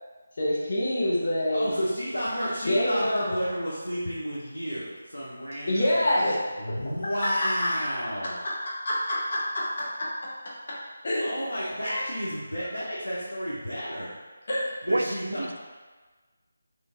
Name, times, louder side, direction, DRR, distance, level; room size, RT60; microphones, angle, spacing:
voice 1, 0.4-1.7 2.6-3.4 5.7-7.3 8.8-10.1 10.7-11.4 14.5-14.7, left 1 dB, 50° left, -6 dB, 0.9 m, -27 dB
voice 2, 1.5-5.9 6.2-8.4 11.2-14.1 14.8-15.6, equal, 85° left, -8 dB, 0.9 m, -31 dB
voice 3, 14.9-15.6, right 2 dB, 65° right, 5 dB, 0.3 m, -29 dB
3.3 x 2.6 x 3.6 m, 1.3 s
figure-of-eight pair, 160°, 0 cm